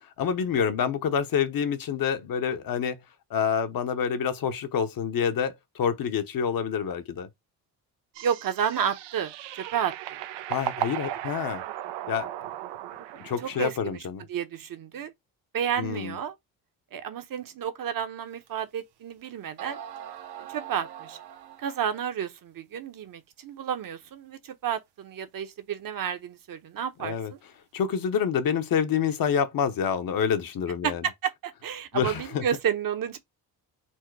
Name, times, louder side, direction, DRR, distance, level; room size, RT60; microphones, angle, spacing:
voice 1, 0.2-3.0 3.3-7.3 10.5-11.6 12.1-12.3 13.2-14.2 15.8-16.2 27.0-27.3 27.7-31.0 31.9-32.4, left 7 dB, 55° left, 1.0 m, -27 dB
sound 1, 8.1-13.7, right 13 dB, 85° right, 0.6 m, -36 dB
voice 2, 8.2-9.9 13.4-14.0 14.3-15.1 15.5-16.3 16.9-19.8 20.4-21.2 21.6-27.4 30.8-33.2, right 8 dB, 55° right, 1.0 m, -31 dB
sound 2, 18.5-18.6 19.2-19.3 19.6-22.0, right 9 dB, 70° right, 1.0 m, -42 dB
4.4 x 2.1 x 4.6 m
cardioid pair, 80°, 40 cm